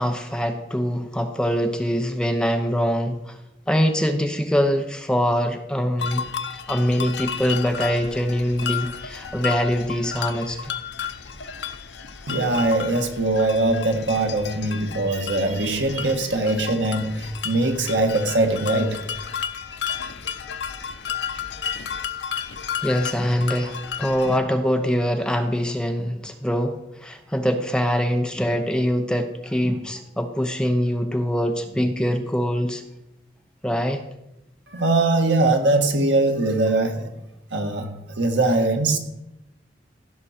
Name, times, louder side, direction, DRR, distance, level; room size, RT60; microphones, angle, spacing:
voice 1, 0.0-3.4 3.7-6.2 6.7-10.7 22.8-32.8 33.6-34.0, equal, 5° left, 5 dB, 0.7 m, -23 dB
sound 1, 6.0-24.4, left 7 dB, 75° left, 0.7 m, -32 dB
voice 2, 12.3-19.0 34.7-37.1 37.5-39.0, right 2 dB, 90° right, 5 dB, 1.5 m, -21 dB
15.5 x 6.2 x 4.4 m, 0.92 s
head